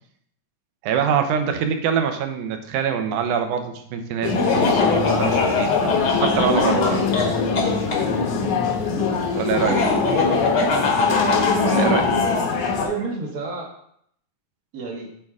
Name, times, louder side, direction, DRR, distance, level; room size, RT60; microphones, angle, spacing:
voice 1, 0.8-5.9 6.2-7.0 9.3-9.8 11.6-12.1, right 7 dB, 85° right, 6 dB, 2.2 m, -24 dB
sound 1, 4.2-12.9, left 4 dB, 75° left, 2.5 m, -23 dB
Laughter, 4.3-8.0 9.5-12.5, left 4 dB, 55° left, 1.2 m, -22 dB
voice 2, 9.3-10.0 10.4-10.7 12.8-13.7 14.7-15.1, right 4 dB, 65° right, 0 dB, 0.9 m, -31 dB
8.7 x 3.6 x 4.8 m, 0.69 s
omnidirectional pair, 3.4 m